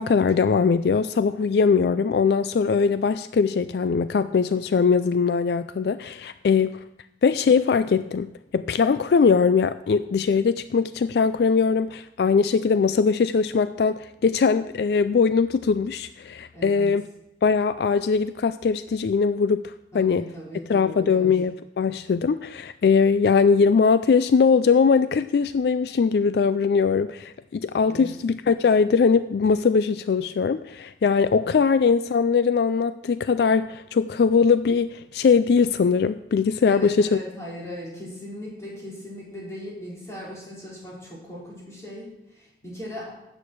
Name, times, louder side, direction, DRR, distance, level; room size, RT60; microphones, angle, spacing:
voice 1, 0.0-6.8 7.2-17.0 17.4-20.3 20.7-37.2, left 5 dB, 65° left, 13 dB, 0.3 m, -21 dB
voice 2, 16.5-16.9 19.9-21.4 27.9-28.1 36.6-43.1, equal, 15° left, -7 dB, 5.0 m, -38 dB
12.5 x 8.8 x 4.6 m, 0.92 s
head